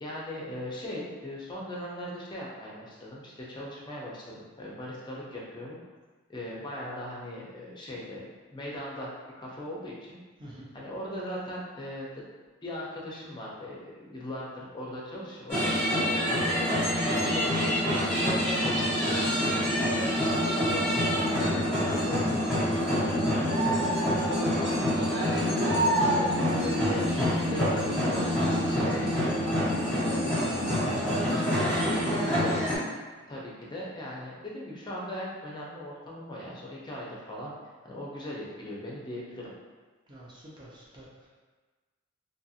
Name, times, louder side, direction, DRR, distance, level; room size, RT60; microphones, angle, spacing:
voice 1, 0.0-5.8 6.3-8.2 8.5-9.1 9.4-10.2 10.7-12.2 12.6-16.3 16.5-16.7 17.0-22.9 23.1-25.1 25.7-32.5 33.3-37.5 37.8-39.5, equal, 25° left, -4 dB, 0.5 m, -39 dB
voice 2, 10.4-10.7 40.1-41.3, right 1 dB, 25° right, -6 dB, 0.5 m, -48 dB
sound 1, 15.5-32.8, equal, 5° left, 1.3 m, -26 dB
2.7 x 2.5 x 2.7 m, 1.4 s
head